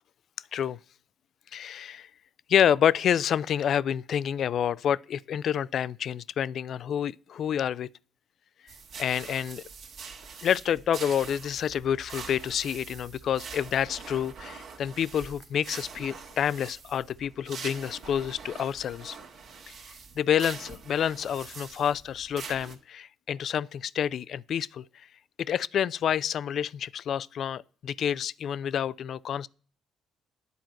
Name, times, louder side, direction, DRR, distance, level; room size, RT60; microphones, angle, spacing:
voice 1, 1.5-2.1 2.5-7.9 9.0-9.6 10.4-19.2 19.7-19.8 20.2-24.8 25.5-29.5, left 9 dB, 60° left, 0.3 m, -28 dB
sound 1, 8.7-22.8, right 5 dB, 65° right, 1.6 m, -44 dB
9.4 x 4.5 x 7.5 m
hypercardioid pair, 55°, 0 cm